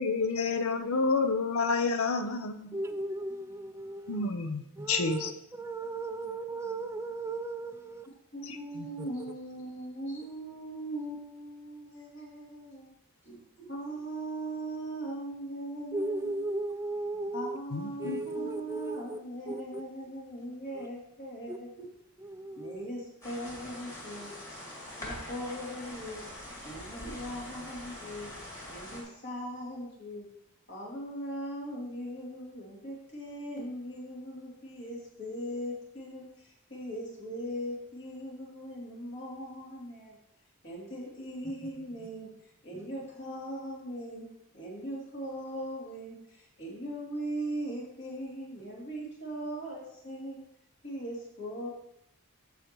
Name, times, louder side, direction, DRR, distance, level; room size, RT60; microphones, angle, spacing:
voice 1, 0.0-2.7 4.1-5.3 8.4-9.1 17.7-18.2, left 4 dB, 70° left, 8 dB, 0.7 m, -30 dB
voice 2, 2.7-4.3 4.8-8.0 9.0-9.1 15.9-17.6 18.0-19.2 19.5-19.8 20.7-20.9 21.5-21.6 22.2-22.9 41.6-41.7 42.7-42.9, right 2 dB, 10° right, 10 dB, 0.3 m, -36 dB
voice 3, 8.3-12.9 13.3-13.4 13.6-16.5 17.3-21.9 22.5-24.3 25.0-26.2 26.6-28.3 28.7-30.2 30.7-40.2 40.6-44.3 44.5-50.4 50.8-51.7, right 1 dB, 50° left, -5 dB, 3.0 m, -39 dB
sound 1, 23.2-29.0, left 1 dB, 15° left, 2.0 m, -43 dB
15.0 x 5.0 x 3.1 m, 0.78 s
head